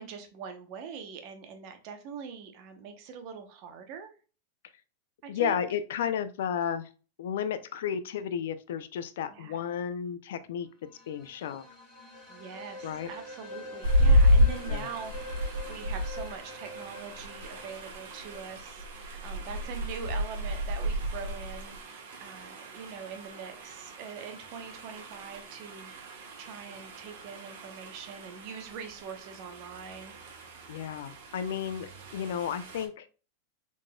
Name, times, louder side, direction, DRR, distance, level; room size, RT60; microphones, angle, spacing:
voice 1, 0.0-4.1 5.2-5.6 9.3-9.7 12.3-30.2, right 6 dB, 45° right, 6 dB, 0.9 m, -43 dB
voice 2, 5.3-6.9 7.2-10.7 11.1-11.6 12.8-13.1 14.7-14.9 30.7-33.1, left 8 dB, 80° left, 12 dB, 0.5 m, -33 dB
sound 1, 10.8-19.6, left 1 dB, 5° left, 2.1 m, -46 dB
sound 2, 13.8-32.9, equal, 70° right, 1.3 m, -31 dB
3.8 x 3.7 x 2.3 m, 0.35 s
supercardioid pair, 150°, 0 cm